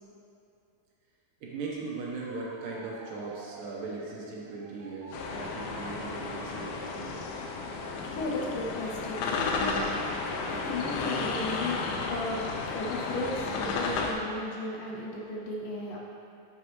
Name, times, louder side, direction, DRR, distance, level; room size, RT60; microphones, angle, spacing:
voice 1, 1.4-7.2, right 3 dB, 70° right, -4 dB, 2.5 m, -39 dB
Motor vehicle (road) / Siren, 1.6-10.5 10.9-11.4, right 2 dB, 90° right, 1.4 m, -52 dB
sound 1, 5.1-14.1, left 4 dB, 90° left, 2.6 m, -33 dB
voice 2, 7.7-16.0, left 2 dB, 70° left, -3 dB, 2.4 m, -36 dB
11.5 x 6.3 x 3.1 m, 2.6 s
omnidirectional pair, 4.3 m